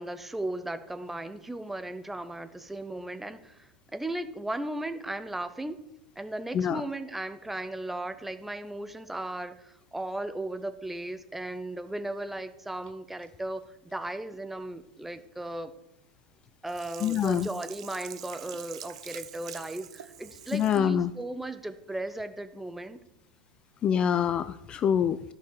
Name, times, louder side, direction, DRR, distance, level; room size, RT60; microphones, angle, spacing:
voice 1, 0.0-5.8 6.2-15.7 16.6-23.0, right 1 dB, 5° right, 10 dB, 0.7 m, -36 dB
Sink (filling or washing), 16.7-20.9 21.3-21.4, right 10 dB, 65° right, 0.6 m, -45 dB
voice 2, 17.0-17.5 20.5-21.1 23.8-25.2, left 8 dB, 30° left, 14 dB, 0.3 m, -25 dB
11.5 x 5.6 x 6.7 m, 0.88 s
figure-of-eight pair, 85°, 3 cm